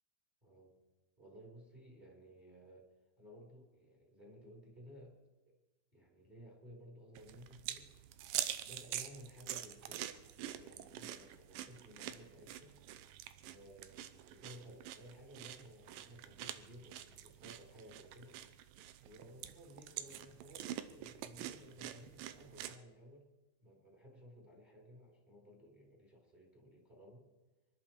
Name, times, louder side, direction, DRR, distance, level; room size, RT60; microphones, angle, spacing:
voice 1, 0.4-0.8 1.2-2.9 3.2-5.2 5.9-7.9 8.6-10.1 10.3-12.8 13.4-18.4 19.0-23.3 23.6-27.3, equal, 10° right, -1 dB, 3.4 m, -57 dB
sound 1, 7.2-22.8, right 12 dB, 75° right, 2.3 m, -46 dB
26.0 x 12.0 x 4.5 m, 1.2 s
omnidirectional pair, 4.4 m